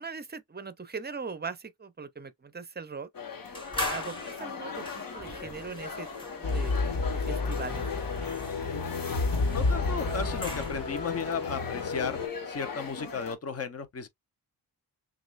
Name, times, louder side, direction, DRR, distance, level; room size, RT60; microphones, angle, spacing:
voice 1, 0.0-3.1 3.4-6.1 6.4-7.9, right 5 dB, 25° right, 0.6 m, -40 dB
sound 1, 3.1-13.4, left 5 dB, 50° left, 1.4 m, -40 dB
sound 2, 3.5-11.1, left 2 dB, 10° left, 3.2 m, -41 dB
sound 3, 6.4-12.3, left 3 dB, 75° left, 1.4 m, -30 dB
voice 2, 9.4-14.1, left 5 dB, 35° left, 0.9 m, -35 dB
6.4 x 2.5 x 2.5 m
wide cardioid pair, 120°, 42 cm